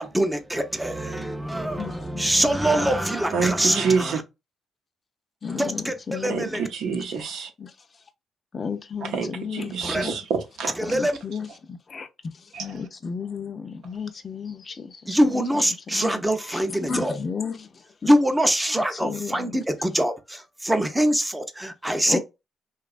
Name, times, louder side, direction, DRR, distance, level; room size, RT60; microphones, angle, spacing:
voice 1, 0.0-4.2 5.5-6.7 9.8-10.0 10.8-11.2 15.1-17.2 18.1-22.2, right 1 dB, 10° right, 0.5 m, -24 dB
voice 2, 1.8-2.5 3.6-3.9 5.4-7.0 7.6-7.7 8.5-9.8 10.0-10.1 10.8-12.1 12.3-15.4 15.9-16.2 16.5-18.1 19.0-19.6 22.1-22.2, left 5 dB, 40° left, 0.5 m, -34 dB
voice 3, 3.3-4.2 6.3-7.5 9.0-10.7 12.5-12.7, right 5 dB, 80° right, 0.7 m, -27 dB
2.8 x 2.3 x 2.4 m
cardioid pair, 90°, 0 cm